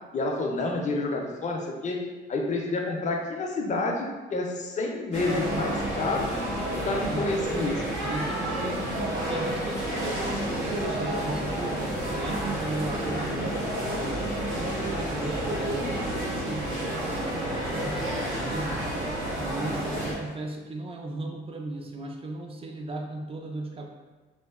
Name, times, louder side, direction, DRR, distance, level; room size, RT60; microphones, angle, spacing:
voice 1, 0.1-2.0 2.3-6.3 6.8-7.8, left 2 dB, 40° left, 1 dB, 0.5 m, -29 dB
sound 1, 5.1-20.1, right 1 dB, 80° right, 0.9 m, -30 dB
voice 2, 8.0-14.3 14.7-18.9 19.4-23.9, right 1 dB, 30° right, 1 dB, 0.4 m, -36 dB
3.0 x 2.1 x 2.3 m, 1.2 s
cardioid pair, 90°, 20 cm